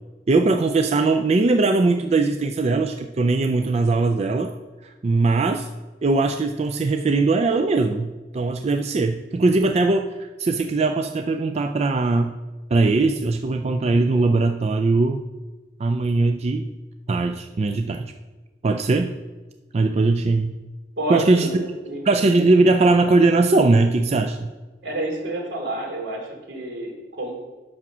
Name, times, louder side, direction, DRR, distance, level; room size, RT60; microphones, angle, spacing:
voice 1, 0.3-4.5 4.8-5.7 6.0-12.3 12.7-15.2 15.8-16.7 17.1-18.1 18.6-19.1 19.7-20.5 21.1-21.7 22.1-24.5, right 3 dB, 35° right, 6 dB, 0.4 m, -20 dB
voice 2, 21.0-22.0 24.8-27.3, right 1 dB, 80° right, -1 dB, 2.8 m, -29 dB
8.6 x 6.0 x 6.1 m, 1.2 s
head